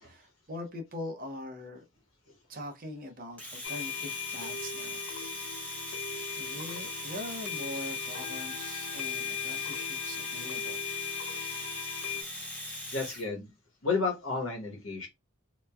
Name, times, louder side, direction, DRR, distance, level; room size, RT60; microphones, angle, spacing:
voice 1, 0.0-1.8 2.5-5.1 5.4-6.0 6.4-10.9, left 1 dB, 40° right, 0.6 m, -42 dB
Domestic sounds home sounds, 3.4-13.3, left 1 dB, 5° left, 0.5 m, -40 dB
sound 1, 3.6-12.2, left 9 dB, 85° left, 0.4 m, -38 dB
voice 2, 12.9-13.5 13.8-15.1, left 4 dB, 65° left, 1.0 m, -32 dB
2.9 x 2.2 x 2.3 m
head